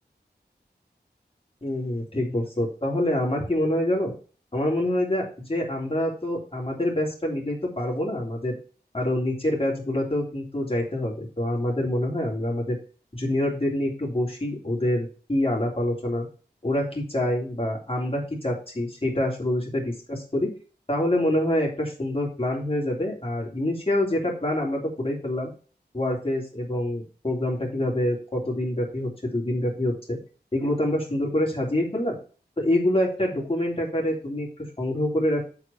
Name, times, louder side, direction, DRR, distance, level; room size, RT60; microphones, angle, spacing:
voice 1, 1.6-4.1 4.5-8.6 8.9-12.8 13.1-16.3 16.6-20.5 20.9-25.5 25.9-30.2 30.5-32.2 32.6-34.5 34.8-35.4, left 1 dB, 30° left, -2 dB, 3.1 m, -26 dB
7.3 x 4.9 x 5.5 m, 0.38 s
wide cardioid pair, 50°, 18 cm